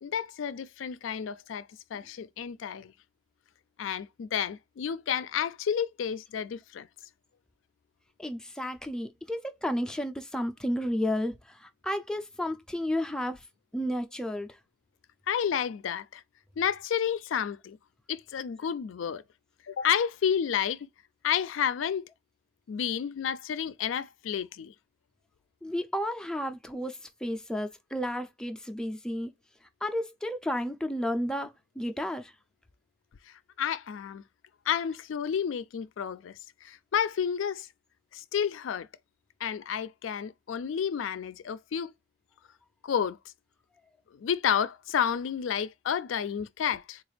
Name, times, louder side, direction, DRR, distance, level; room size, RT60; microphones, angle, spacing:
voice 1, 0.0-2.9 3.8-6.9 15.3-16.2 16.6-17.8 18.1-19.2 19.7-20.9 21.2-22.0 22.7-24.7 33.6-34.2 34.7-37.7 38.1-38.9 39.4-41.9 42.8-43.2 44.1-47.0, left 8 dB, 85° left, 0.4 m, -30 dB
voice 2, 8.2-13.4 13.7-14.6 25.6-29.3 29.8-32.3, equal, 5° left, 0.4 m, -32 dB
3.9 x 2.3 x 3.2 m
head